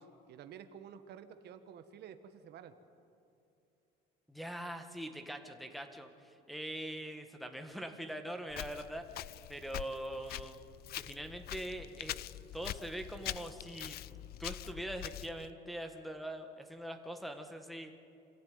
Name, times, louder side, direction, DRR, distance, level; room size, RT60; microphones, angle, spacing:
voice 1, 0.0-2.7, right 8 dB, 60° right, 9 dB, 1.3 m, -51 dB
voice 2, 4.3-9.1 9.5-10.6 10.9-14.0 14.4-18.0, right 1 dB, ahead, 4 dB, 1.7 m, -43 dB
Walk footsteps, 8.5-15.5, left 14 dB, 55° left, 0.4 m, -44 dB
26.0 x 15.0 x 9.5 m, 2.7 s
cardioid pair, 135°, 19 cm